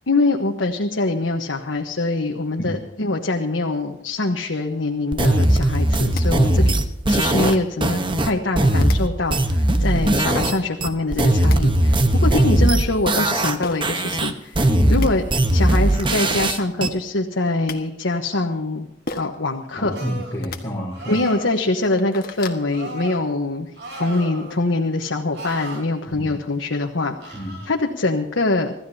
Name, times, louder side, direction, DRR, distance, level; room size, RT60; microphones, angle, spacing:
voice 1, 0.1-6.8 7.1-15.2 15.5-18.9 19.2-19.9 21.1-23.7 24.0-27.4 27.7-28.7, left 2 dB, 85° left, 2 dB, 1.2 m, -23 dB
sound 1, 5.1-10.6 10.8-13.6 13.8-16.9, right 1 dB, 25° right, 1.0 m, -19 dB
sound 2, 6.1-6.2 7.4-7.8 8.8-9.0 10.3-10.5 11.2-11.6 13.6-13.8 14.6-14.7 14.9-15.1 16.0-16.1 16.3-16.5 17.3-17.8 19.1-19.4 20.3-20.6 21.2-21.3 21.7-22.6, left 3 dB, 50° left, 1.5 m, -32 dB
voice 2, 6.3-6.7 9.9-10.0 14.7-15.0 19.8-21.2 26.1-26.3 27.3-27.6, equal, 15° left, -5 dB, 4.4 m, -29 dB
sound 3, 19.9-20.4 20.9-21.6 22.7-23.2 23.8-24.6 25.3-25.8 27.2-27.7, right 2 dB, 65° right, 4.2 m, -36 dB
26.0 x 14.5 x 2.8 m, 0.87 s
head